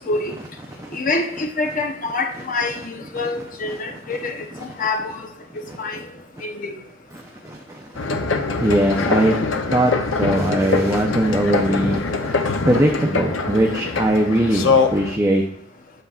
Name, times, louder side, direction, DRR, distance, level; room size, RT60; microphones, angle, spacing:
voice 1, 0.9-4.4 4.8-5.2 5.8-6.0 6.4-6.7, left 3 dB, 45° left, 3 dB, 0.7 m, -25 dB
voice 2, 7.1-7.9 8.6-9.4 9.7-9.9 10.2-15.4, right 1 dB, 15° right, 1 dB, 0.6 m, -20 dB
sound 1, 7.9-15.1, left 4 dB, 90° left, 0.7 m, -23 dB
7.7 x 7.0 x 2.4 m, 0.72 s
head